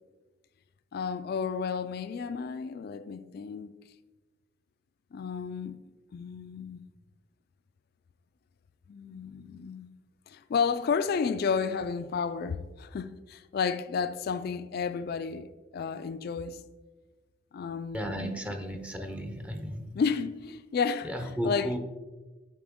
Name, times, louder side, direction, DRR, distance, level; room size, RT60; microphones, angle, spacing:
voice 1, 0.9-3.7 5.1-5.8 6.1-6.8 8.9-9.9 10.3-15.5 15.7-16.6 17.5-18.4 18.7-18.8 19.9-21.8, left 5 dB, 55° left, 0.3 m, -32 dB
voice 2, 17.9-19.9 21.0-21.8, equal, 5° right, 0.5 m, -34 dB
8.6 x 4.9 x 3.6 m
head